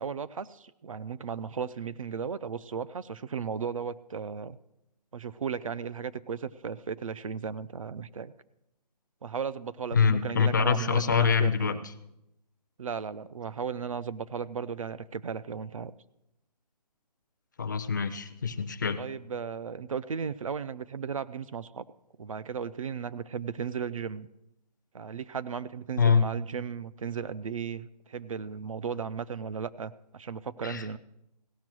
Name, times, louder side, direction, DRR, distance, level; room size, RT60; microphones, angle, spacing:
voice 1, 0.0-4.6 5.1-8.3 9.2-11.8 12.8-15.9 19.0-21.8 22.2-24.3 24.9-31.0, right 6 dB, 55° right, 15 dB, 0.4 m, -35 dB
voice 2, 9.9-11.8 17.6-19.0 26.0-26.2 30.6-30.8, left 6 dB, 30° left, 10 dB, 0.5 m, -25 dB
16.5 x 6.2 x 6.0 m, 0.84 s
hypercardioid pair, 170°, 21 cm